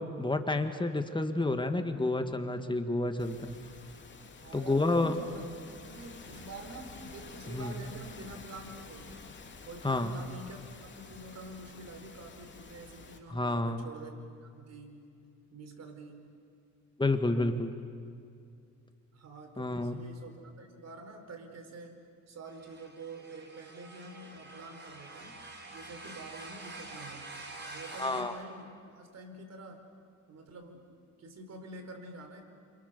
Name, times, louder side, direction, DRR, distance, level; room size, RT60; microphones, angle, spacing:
voice 1, 0.0-3.6 4.5-5.1 7.5-7.7 9.8-10.1 13.3-13.8 17.0-17.7 19.6-20.0 28.0-28.3, left 2 dB, 15° left, 7 dB, 2.1 m, -30 dB
sound 1, 3.2-13.2, left 4 dB, 40° left, 3.0 m, -50 dB
voice 2, 4.4-5.5 5.8-9.3 9.6-15.1 15.5-16.3 17.2-17.7 19.1-25.4 25.7-27.3 27.6-29.8 30.3-32.4, right 2 dB, 60° right, 5 dB, 4.8 m, -47 dB
sound 2, 22.5-28.2, right 2 dB, 35° right, 4.3 m, -47 dB
28.5 x 27.5 x 7.0 m, 2.4 s
cardioid pair, 90°, 30 cm